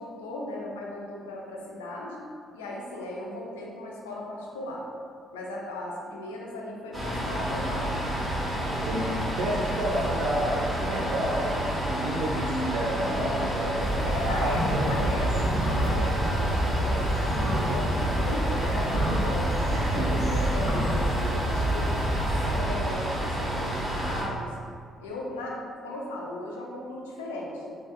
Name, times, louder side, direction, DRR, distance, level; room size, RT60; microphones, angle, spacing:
voice 1, 0.0-2.2 2.5-4.8 5.3-7.9 14.1-19.6 19.9-24.6 25.0-27.7, left 1 dB, 75° left, -2 dB, 0.4 m, -36 dB
sound 1, 6.9-24.2, right 1 dB, 15° right, 1.0 m, -30 dB
voice 2, 8.8-15.0 19.7-20.3, right 1 dB, 60° right, -4 dB, 0.6 m, -30 dB
sound 2, 13.8-22.6, right 1 dB, 20° left, 0.7 m, -28 dB
3.5 x 2.2 x 2.3 m, 2.2 s
figure-of-eight pair, 45°, 0 cm